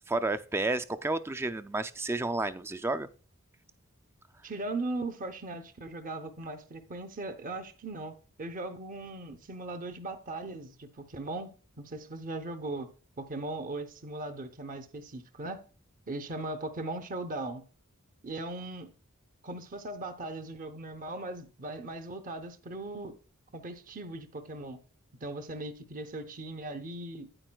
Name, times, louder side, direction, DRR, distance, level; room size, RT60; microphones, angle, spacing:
voice 1, 0.1-3.1, right 2 dB, 10° right, 0.3 m, -31 dB
voice 2, 4.4-11.5 11.8-12.9 13.2-15.6 16.1-17.6 18.2-18.9 19.4-23.2 23.5-24.8 25.2-27.3, right 2 dB, 40° right, 0.7 m, -38 dB
9.5 x 8.8 x 2.3 m
head